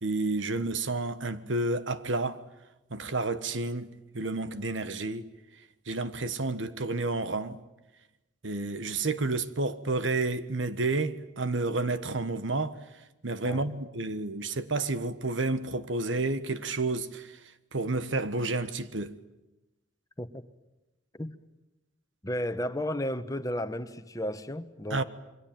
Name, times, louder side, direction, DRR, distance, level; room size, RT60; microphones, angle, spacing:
voice 1, 0.0-2.4 2.9-3.9 4.1-5.3 5.9-7.6 8.4-12.8 13.2-17.3 17.7-19.1 24.9-25.0, right 3 dB, 80° right, 1.4 m, -30 dB
voice 2, 22.2-25.0, left 1 dB, 20° left, 1.2 m, -33 dB
28.0 x 23.0 x 9.2 m
head